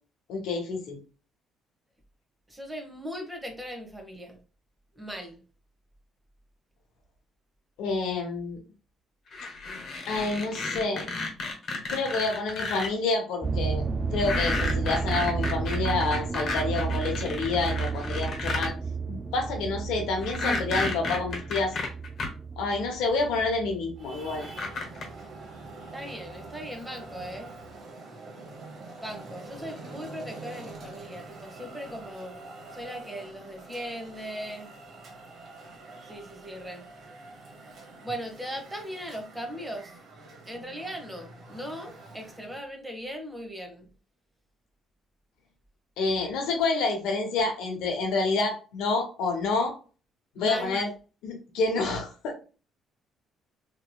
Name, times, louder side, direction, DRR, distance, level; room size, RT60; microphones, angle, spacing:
voice 1, 0.3-1.0 7.8-8.6 10.1-11.1 11.9-13.8 14.1-18.7 19.1-21.8 22.6-24.5 46.0-49.7 50.4-50.9 51.2-52.4, left 3 dB, 80° left, 0.7 m, -28 dB
voice 2, 2.5-4.4 4.9-5.4 25.9-27.5 29.0-32.4 32.7-34.7 36.1-36.8 38.0-40.0 40.4-43.9 50.4-50.8, equal, 15° right, 1.0 m, -39 dB
sound 1, 9.3-12.9 14.1-18.7 20.2-22.3 23.4-23.5 24.4-25.1, left 3 dB, 55° left, 1.1 m, -32 dB
sound 2, 13.4-25.7 26.3-26.6 27.2-27.3 27.7-27.8, right 4 dB, 30° right, 0.3 m, -32 dB
Traffic noise roadway noise, 24.0-42.6, right 2 dB, 55° right, 0.9 m, -45 dB
2.9 x 2.8 x 2.3 m
supercardioid pair, 70°, 0 cm